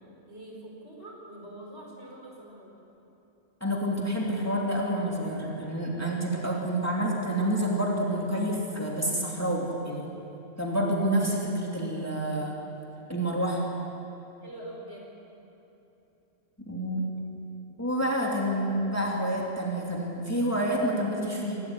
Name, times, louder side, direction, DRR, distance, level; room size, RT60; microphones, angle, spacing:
voice 1, 0.3-2.7 14.4-15.1, right 1 dB, 60° right, -2 dB, 5.3 m, -44 dB
voice 2, 3.6-10.1 10.6-12.6 13.1-13.7 16.7-17.0 17.8-21.6, right 1 dB, 10° left, -3 dB, 3.0 m, -28 dB
26.0 x 13.5 x 9.8 m, 2.9 s
omnidirectional pair, 1.3 m